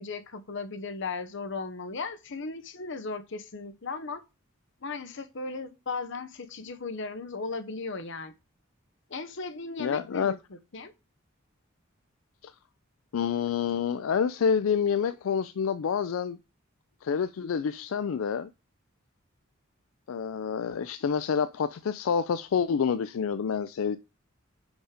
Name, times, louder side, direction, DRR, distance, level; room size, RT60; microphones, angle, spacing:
voice 1, 0.0-4.2 4.8-8.3 9.1-10.9, left 4 dB, 65° left, 0.9 m, -36 dB
voice 2, 9.8-10.3 12.4-12.5 13.1-16.4 17.0-18.5 20.1-24.0, left 6 dB, 90° left, 0.4 m, -28 dB
5.2 x 5.0 x 4.8 m
head